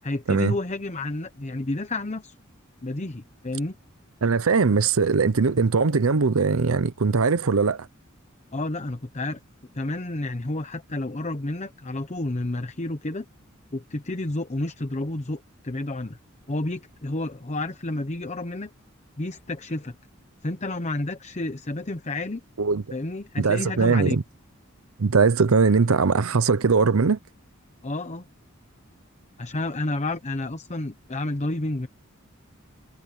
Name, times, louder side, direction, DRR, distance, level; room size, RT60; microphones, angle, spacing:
voice 1, 0.0-2.3 2.8-3.8 8.5-9.4 9.7-13.3 13.7-16.2 16.5-18.7 19.2-20.0 20.4-22.4 22.9-24.2 27.8-28.3 29.4-31.9, left 2 dB, 35° left, 0.9 m, -30 dB
voice 2, 4.2-7.9 22.6-22.8 23.4-24.2 25.0-27.2, right 4 dB, 85° right, 0.7 m, -20 dB
head